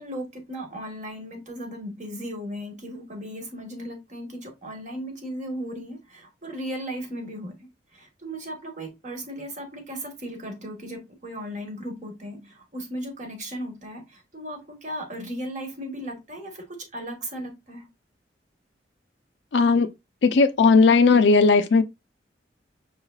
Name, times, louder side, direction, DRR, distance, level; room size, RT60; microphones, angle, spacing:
voice 1, 0.0-7.7 7.9-17.9, equal, 45° right, 1.2 m, -36 dB
voice 2, 19.5-19.9 20.2-21.8, left 4 dB, 75° left, 0.4 m, -17 dB
5.3 x 3.2 x 2.3 m
head